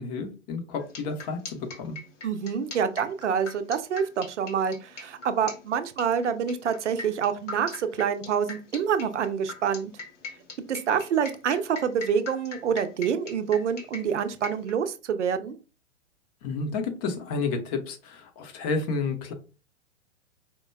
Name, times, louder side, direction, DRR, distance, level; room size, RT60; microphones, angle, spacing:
voice 1, 0.0-2.0 16.4-19.3, left 4 dB, 30° left, 6 dB, 0.7 m, -31 dB
sound 1, 0.8-14.7, left 4 dB, 75° left, 0.9 m, -40 dB
voice 2, 2.2-9.9 10.7-15.6, right 7 dB, 70° right, 10 dB, 0.6 m, -27 dB
4.4 x 2.1 x 2.2 m, 0.32 s
figure-of-eight pair, 110°, 37 cm